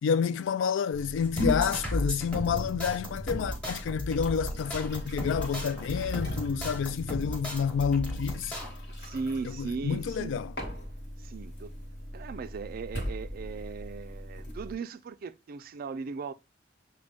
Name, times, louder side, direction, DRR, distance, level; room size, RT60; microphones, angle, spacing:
voice 1, 0.0-8.6 9.4-10.5, left 7 dB, 75° left, 0.3 m, -29 dB
sound 1, 0.9-14.7, left 1 dB, 60° left, 1.3 m, -39 dB
sound 2, 1.2-8.7, equal, 5° left, 1.0 m, -35 dB
voice 2, 9.0-10.4 11.2-11.8 12.1-16.3, right 4 dB, 50° right, 0.3 m, -38 dB
6.4 x 2.2 x 3.4 m
head